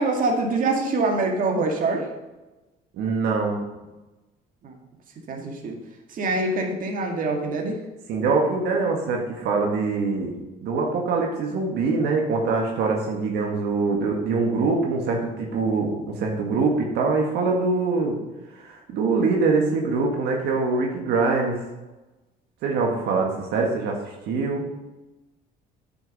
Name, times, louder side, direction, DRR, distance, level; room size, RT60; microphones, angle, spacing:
voice 1, 0.0-2.1 4.6-4.7 5.3-5.8 6.1-7.8, right 3 dB, 55° right, 1 dB, 2.0 m, -24 dB
voice 2, 2.9-3.6 8.1-10.3 10.6-18.2 18.6-21.6 22.6-24.0 24.3-24.6, right 4 dB, 80° right, 0 dB, 1.8 m, -23 dB
9.3 x 7.1 x 5.4 m, 1.1 s
cardioid pair, 110°, 17 cm